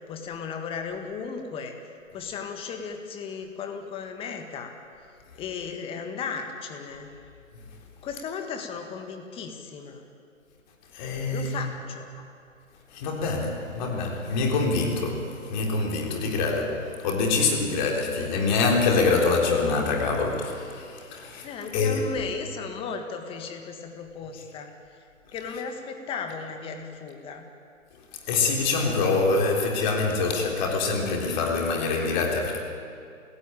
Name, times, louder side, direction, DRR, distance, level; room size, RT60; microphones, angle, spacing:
voice 1, 0.1-1.8 2.1-4.7 5.4-7.1 8.0-10.0 11.3-12.1 21.4-24.7 25.3-27.4, left 5 dB, 15° left, 5 dB, 1.7 m, -36 dB
voice 2, 10.9-11.6 12.9-21.5 21.7-22.0 28.3-32.6, left 4 dB, 35° left, 1 dB, 3.9 m, -25 dB
28.0 x 16.5 x 9.0 m, 2.4 s
hypercardioid pair, 145°, 40 cm